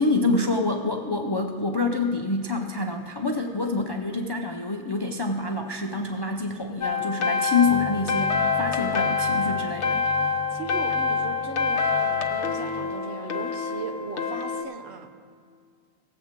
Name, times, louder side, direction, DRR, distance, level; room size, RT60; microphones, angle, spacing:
voice 1, 0.0-10.0, left 3 dB, 30° left, 3 dB, 0.4 m, -26 dB
sound 1, 6.8-14.6, left 5 dB, 70° left, 1.1 m, -26 dB
sound 2, 7.6-12.9, right 2 dB, 30° right, 0.7 m, -41 dB
voice 2, 10.5-15.1, right 4 dB, 65° right, 5 dB, 1.1 m, -37 dB
18.0 x 7.8 x 3.6 m, 2.1 s
omnidirectional pair, 1.2 m